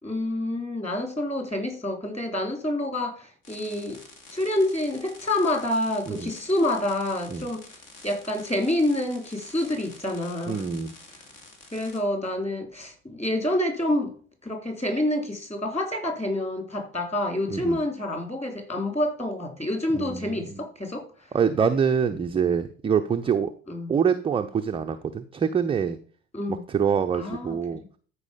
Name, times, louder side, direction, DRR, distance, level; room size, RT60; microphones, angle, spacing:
voice 1, 0.0-4.0 4.3-10.6 11.1-11.2 11.7-14.1 14.4-21.3 23.7-23.9 26.3-26.6 27.1-27.6, left 1 dB, 15° left, 4 dB, 3.4 m, -28 dB
sound 1, 3.4-12.0, left 3 dB, 50° left, 2.8 m, -49 dB
voice 2, 10.5-10.9 17.5-17.8 19.9-20.6 21.3-23.5 23.9-26.0 26.5-27.8, right 7 dB, 15° right, 6 dB, 0.5 m, -25 dB
13.0 x 4.9 x 5.1 m, 0.44 s
figure-of-eight pair, 65°, 42 cm